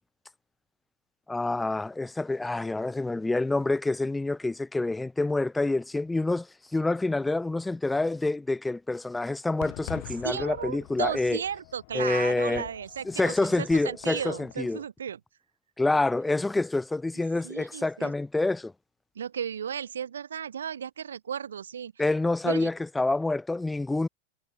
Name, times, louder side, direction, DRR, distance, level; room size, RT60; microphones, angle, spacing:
voice 1, 1.3-6.5 6.7-11.4 11.9-12.7 13.0-14.8 15.8-18.7 22.0-24.1, left 2 dB, 5° left, 0.9 m, -27 dB
Fireworks, 9.6-14.7, left 28 dB, 45° left, 1.2 m, -45 dB
voice 2, 10.2-15.2 17.4-18.1 19.2-21.9 22.4-22.7, right 8 dB, 65° right, 0.6 m, -34 dB
figure-of-eight pair, 90°, 0 cm